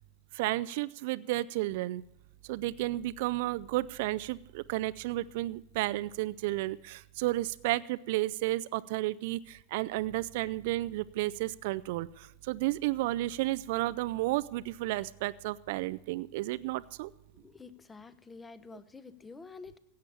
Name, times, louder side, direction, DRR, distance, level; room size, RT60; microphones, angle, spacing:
voice 1, 0.3-2.0 2.4-17.1, right 17 dB, 60° right, 16 dB, 0.4 m, -32 dB
voice 2, 17.3-19.8, left 4 dB, 15° left, 14 dB, 1.1 m, -49 dB
16.0 x 8.7 x 7.0 m, 0.83 s
hypercardioid pair, 95°, 0 cm